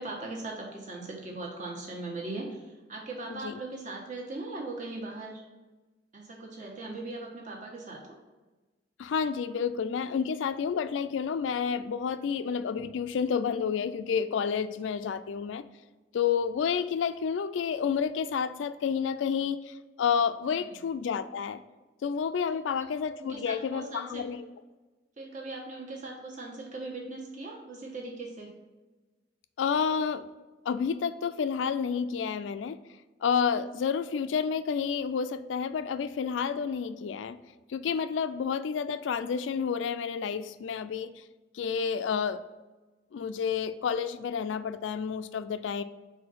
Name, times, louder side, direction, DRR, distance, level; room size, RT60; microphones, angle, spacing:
voice 1, 0.0-5.5 6.1-8.2 20.6-20.7 22.5-22.6 23.2-24.2 25.2-28.5, right 2 dB, 45° right, -1 dB, 1.3 m, -39 dB
voice 2, 9.0-15.6 16.1-21.6 22.0-24.4 29.6-30.3 30.7-32.8 33.2-37.4 37.7-41.2 41.5-42.4 43.1-45.8, left 6 dB, 85° left, 11 dB, 0.3 m, -30 dB
4.8 x 3.8 x 5.5 m, 1.2 s
head